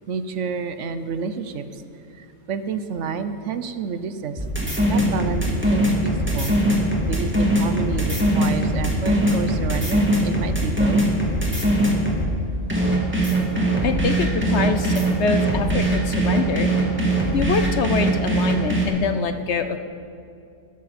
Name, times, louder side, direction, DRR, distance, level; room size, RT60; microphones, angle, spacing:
voice 1, 0.1-1.6 2.2-4.4 4.9-6.5 7.1-11.0, right 6 dB, 60° right, 11 dB, 0.9 m, -29 dB
sound 1, 4.4-12.2 12.7-18.9, right 1 dB, 10° right, 2.2 m, -21 dB
voice 2, 13.8-16.7 17.3-19.8, left 6 dB, 60° left, 8 dB, 0.8 m, -25 dB
16.0 x 13.5 x 4.2 m, 2.5 s
omnidirectional pair, 1.5 m